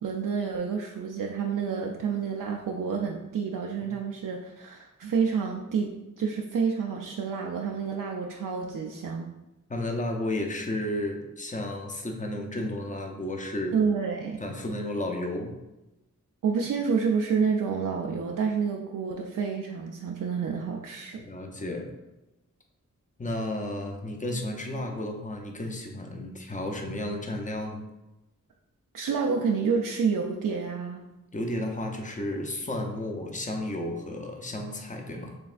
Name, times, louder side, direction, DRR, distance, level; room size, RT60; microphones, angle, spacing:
voice 1, 0.0-9.3 13.7-14.4 16.4-21.2 28.9-31.1, right 5 dB, 75° right, 0 dB, 0.5 m, -29 dB
voice 2, 9.7-13.8 14.4-15.5 21.2-21.9 23.2-27.9 31.3-35.4, left 1 dB, 25° left, 2 dB, 0.7 m, -32 dB
4.6 x 3.2 x 2.5 m, 0.97 s
cardioid pair, 55°, 32 cm